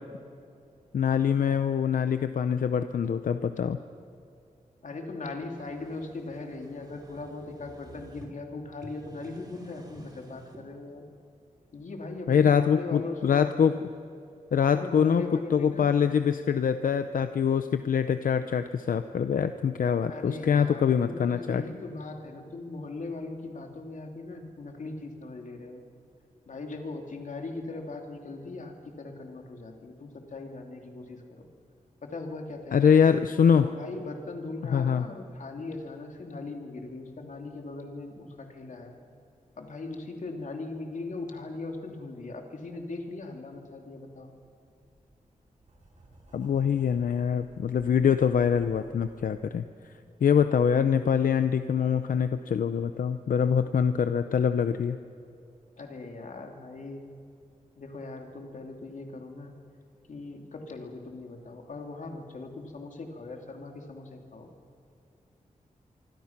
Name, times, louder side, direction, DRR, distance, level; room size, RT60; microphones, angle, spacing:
voice 1, 0.9-3.8 12.3-13.8 14.5-21.6 32.7-33.7 34.7-35.1 46.3-49.6 50.2-55.0, left 7 dB, 90° left, 10 dB, 0.7 m, -24 dB
voice 2, 4.8-11.0 11.7-13.5 14.7-15.9 20.1-25.8 26.5-31.5 32.0-33.0 33.5-39.0 39.6-44.3 55.8-57.1 57.8-59.5 60.1-64.5, left 3 dB, 65° left, 3 dB, 3.1 m, -39 dB
sound 1, 5.2-8.3 8.7-10.7, right 2 dB, 30° right, 3.4 m, -51 dB
Writing, 44.2-44.3 44.8-49.2, right 1 dB, 60° right, 7.0 m, -54 dB
26.0 x 24.5 x 6.0 m, 2.6 s
wide cardioid pair, 125°, 14 cm